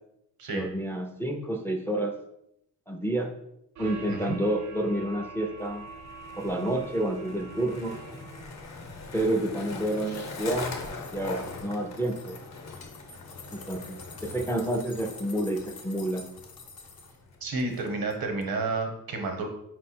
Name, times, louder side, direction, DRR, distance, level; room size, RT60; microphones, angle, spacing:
voice 1, 0.5-2.1 2.9-3.3 3.8-5.9 6.4-8.0 9.1-10.8 11.1-12.4 13.5-16.2, right 1 dB, 5° left, 3 dB, 0.3 m, -29 dB
sound 1, 3.8-8.6, right 4 dB, 55° right, 0.5 m, -44 dB
Skateboard, 5.6-18.3, left 3 dB, 50° left, 0.8 m, -42 dB
sound 2, 9.5-11.7 12.0-17.2 17.6-18.2 18.4-18.5, left 4 dB, 80° left, 0.7 m, -48 dB
voice 2, 17.4-19.5, right 3 dB, 85° right, 4 dB, 0.9 m, -30 dB
4.4 x 2.2 x 4.2 m, 0.78 s
cardioid pair, 105°, 35 cm